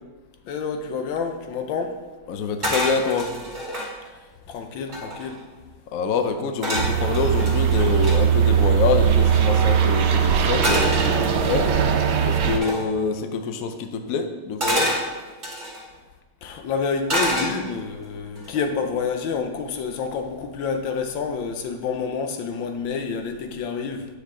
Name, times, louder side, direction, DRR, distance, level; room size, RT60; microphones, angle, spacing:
voice 1, 0.5-2.0 4.5-5.4 16.4-24.1, left 5 dB, 80° left, 1.5 m, -28 dB
voice 2, 2.3-3.3 5.9-11.7 12.2-15.0, left 5 dB, 65° left, 0.9 m, -26 dB
sound 1, 2.6-3.9 4.5-4.6 4.8-5.4 6.6-8.2 10.6-11.7 12.6-12.9 14.6-15.8 17.1-17.9 18.4-18.7, equal, 25° right, 2.1 m, -27 dB
sound 2, 6.7-12.6, right 8 dB, 75° right, 1.4 m, -20 dB
9.8 x 6.4 x 3.7 m
omnidirectional pair, 2.1 m